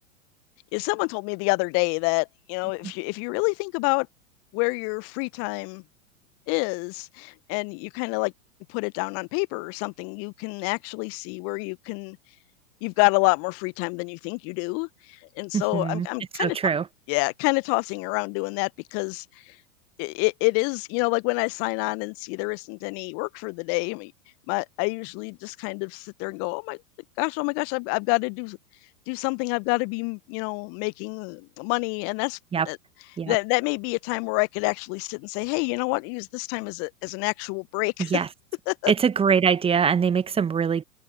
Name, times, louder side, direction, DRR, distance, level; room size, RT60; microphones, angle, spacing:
voice 1, 0.7-4.1 4.5-5.8 6.5-8.3 8.7-12.2 12.8-16.6 17.1-19.6 20.0-24.1 24.5-26.8 27.2-28.6 29.1-32.4 32.7-32.8 33.3-38.2 38.7-38.9, left 34 dB, 35° left, 1.0 m, -27 dB
voice 2, 15.5-16.1 16.4-16.9 32.5-32.7 33.2-33.4 38.0-38.3 38.9-40.8, right 6 dB, 15° right, 1.3 m, -23 dB
figure-of-eight pair, 100°, 43 cm